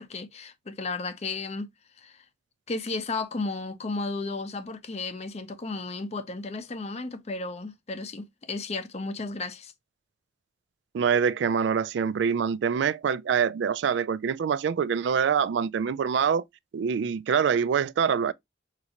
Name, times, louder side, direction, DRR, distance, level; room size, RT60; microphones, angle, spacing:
voice 1, 0.0-1.7 2.0-2.2 2.7-9.7, left 3 dB, 35° left, 0.5 m, -34 dB
voice 2, 10.9-16.4 16.7-18.3, right 7 dB, 65° right, 0.3 m, -25 dB
5.3 x 2.5 x 2.8 m
head